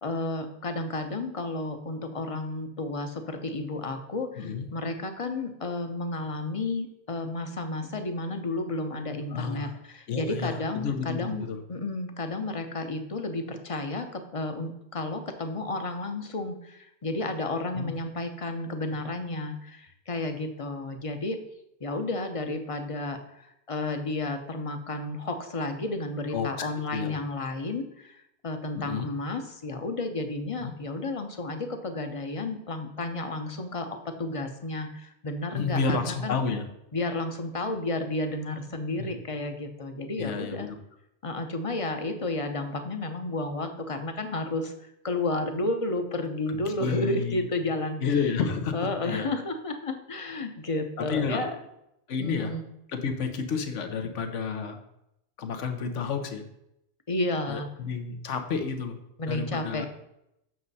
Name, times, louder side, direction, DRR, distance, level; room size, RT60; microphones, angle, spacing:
voice 1, 0.0-21.4 21.8-36.4 36.9-40.7 41.2-48.3 48.7-51.5 52.2-52.6 57.1-57.7 59.2-59.9, left 2 dB, 35° left, 7 dB, 0.7 m, -32 dB
voice 2, 4.4-4.7 9.3-9.7 10.1-10.6 10.8-11.6 17.8-17.9 26.3-27.2 28.8-29.1 30.6-30.7 35.5-36.7 39.0-39.1 40.2-40.8 46.5-47.5 48.0-49.3 51.0-51.5 52.1-52.5 52.9-54.8 55.4-56.4 57.5-59.0 59.3-59.9, left 5 dB, 85° left, 7 dB, 1.2 m, -30 dB
7.6 x 6.3 x 4.1 m, 0.82 s
omnidirectional pair, 1.2 m